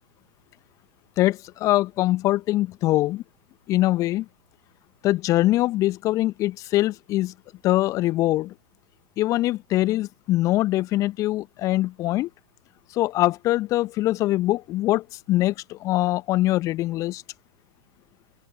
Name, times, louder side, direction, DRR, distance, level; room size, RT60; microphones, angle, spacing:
voice 1, 1.2-3.2 3.7-4.2 5.0-7.3 7.6-8.5 9.2-12.3 13.0-17.2, left 16 dB, 30° left, 1.1 m, -23 dB
open air
figure-of-eight pair, 100°, 11 cm